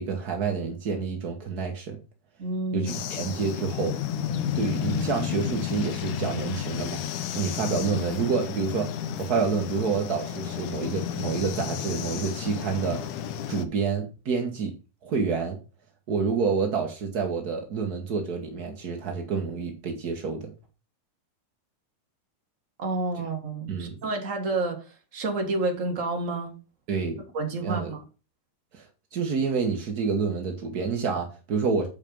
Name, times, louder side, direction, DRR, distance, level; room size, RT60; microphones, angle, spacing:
voice 1, 0.0-2.0 2.7-4.0 4.5-7.0 7.3-8.9 9.2-13.0 13.5-14.7 15.0-15.6 16.1-20.5 23.7-24.0 26.9-27.2 27.6-27.9 28.7-31.9, right 5 dB, 70° right, 3 dB, 0.9 m, -28 dB
voice 2, 2.4-3.0 22.8-24.8 25.1-26.5 27.3-28.0, right 2 dB, 35° right, 3 dB, 1.3 m, -29 dB
sound 1, 2.9-13.7, left 8 dB, 80° left, 2.3 m, -32 dB
8.1 x 5.5 x 5.3 m, 0.33 s
omnidirectional pair, 3.6 m